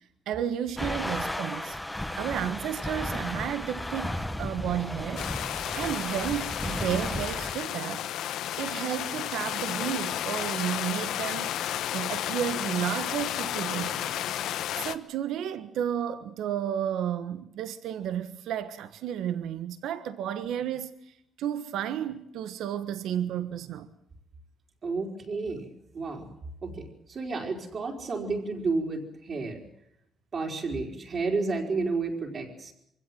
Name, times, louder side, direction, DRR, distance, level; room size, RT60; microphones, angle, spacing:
voice 1, 0.3-1.8 2.2-8.1 8.6-11.5 11.9-14.2 14.8-20.9 21.4-23.9, right 10 dB, 80° right, 1.4 m, -32 dB
sound 1, 0.8-7.5, left 1 dB, 5° left, 1.2 m, -34 dB
sound 2, 5.2-15.0, left 12 dB, 80° left, 1.1 m, -32 dB
voice 2, 24.8-26.3 26.6-29.6 30.3-32.7, right 3 dB, 35° right, 4.5 m, -31 dB
25.5 x 16.5 x 9.3 m
cardioid pair, 175°, 0 cm